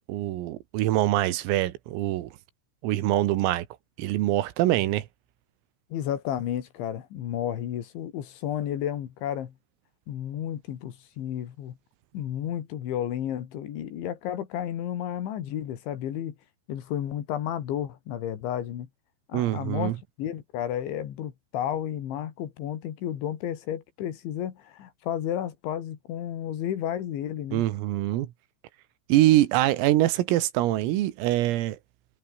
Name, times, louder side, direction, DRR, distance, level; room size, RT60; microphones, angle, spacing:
voice 1, 0.1-2.3 2.8-3.7 4.0-5.1 19.3-20.0 27.5-28.3 29.1-31.8, right 15 dB, 85° right, 4.2 m, -24 dB
voice 2, 5.9-9.5 10.1-11.8 12.1-16.4 16.7-18.9 19.3-27.7, left 10 dB, 65° left, 4.5 m, -32 dB
omnidirectional pair, 5.9 m